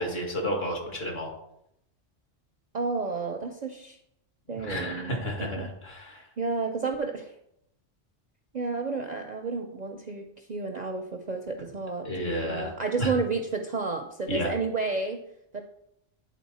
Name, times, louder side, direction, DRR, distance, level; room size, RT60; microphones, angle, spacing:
voice 1, 0.0-1.3 4.5-6.2 12.0-12.7 13.0-13.1 14.3-14.5, equal, 55° left, 1 dB, 1.9 m, -31 dB
voice 2, 2.7-4.0 4.5-5.7 6.4-7.3 8.5-15.2 15.5-15.6, right 4 dB, 50° right, 4 dB, 0.5 m, -31 dB
9.3 x 4.2 x 4.1 m, 0.77 s
omnidirectional pair, 1.3 m